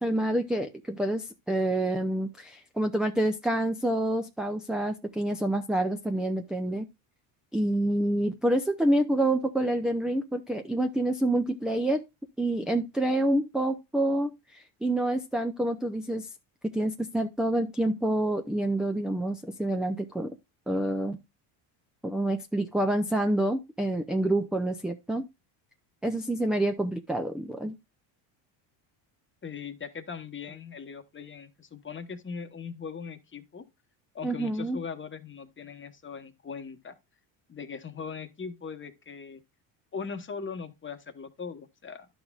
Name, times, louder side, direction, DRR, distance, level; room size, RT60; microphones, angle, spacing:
voice 1, 0.0-6.9 7.5-12.0 12.4-16.3 16.6-20.4 20.7-21.2 22.0-25.2 26.0-27.8 34.2-34.8, right 1 dB, ahead, 0.5 m, -27 dB
voice 2, 29.4-33.6 34.1-36.9 37.5-39.4 39.9-42.1, left 6 dB, 25° left, 1.1 m, -40 dB
11.5 x 6.1 x 2.4 m
cardioid pair, 110°, 49 cm